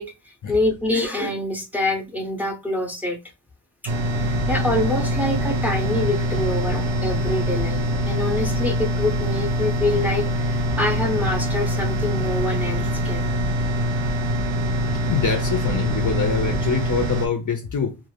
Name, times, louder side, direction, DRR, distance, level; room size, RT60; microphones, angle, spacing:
voice 1, 0.0-3.2 4.1-13.3, left 1 dB, 5° right, 0.6 m, -26 dB
sound 1, 3.9-17.3, equal, 90° right, 0.6 m, -24 dB
voice 2, 15.0-18.0, left 6 dB, 45° left, 0.4 m, -24 dB
2.4 x 2.3 x 3.1 m
wide cardioid pair, 120°, 44 cm